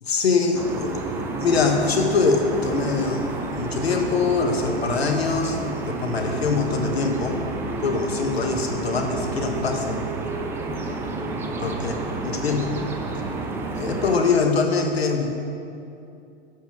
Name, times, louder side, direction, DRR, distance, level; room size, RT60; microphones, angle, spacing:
voice 1, 0.0-0.9 1.4-3.3 3.6-5.6 5.9-7.4 7.8-10.0 11.6-12.7 13.7-15.3, left 4 dB, 65° left, 3 dB, 1.4 m, -23 dB
sound 1, 0.5-14.2, right 3 dB, 5° right, 0.4 m, -30 dB
12.0 x 5.7 x 6.5 m, 2.6 s
figure-of-eight pair, 105°, 33 cm